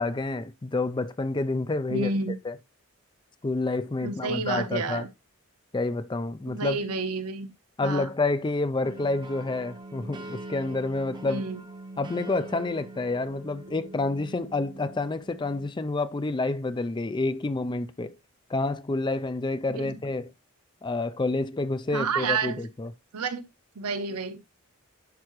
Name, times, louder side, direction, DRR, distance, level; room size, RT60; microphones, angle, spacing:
voice 1, 0.0-2.1 2.5-2.6 3.4-5.1 5.7-6.8 7.8-11.4 12.0-18.1 18.5-20.3 20.8-22.9, left 2 dB, 20° left, 0.4 m, -28 dB
voice 2, 1.9-2.3 4.0-5.1 6.5-7.5 7.8-8.1 11.3-11.6 19.7-20.0 21.9-22.6 23.1-23.4 23.8-24.4, right 4 dB, 90° right, 0.9 m, -30 dB
church bells hagerau, 8.8-15.7, right 2 dB, 20° right, 0.7 m, -43 dB
10.5 x 4.8 x 3.1 m
head